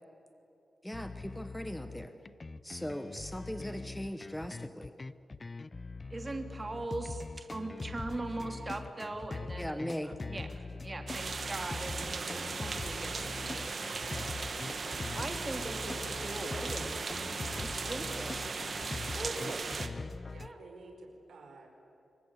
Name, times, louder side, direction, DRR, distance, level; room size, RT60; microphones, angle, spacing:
voice 1, 0.8-2.1 2.6-4.9 9.6-10.1, equal, 5° left, 9 dB, 1.2 m, -39 dB
sound 1, 0.9-20.5, left 3 dB, 25° left, 0.6 m, -42 dB
voice 2, 6.1-14.3 15.1-18.4 19.1-19.6 20.4-20.6, right 2 dB, 20° right, 5 dB, 2.7 m, -41 dB
sound 2, 11.1-19.9, right 4 dB, 40° right, 1.7 m, -37 dB
voice 3, 19.0-20.0 20.3-21.7, right 3 dB, 85° right, 2 dB, 4.8 m, -53 dB
26.0 x 23.5 x 9.7 m, 2.8 s
wide cardioid pair, 160°, 0 cm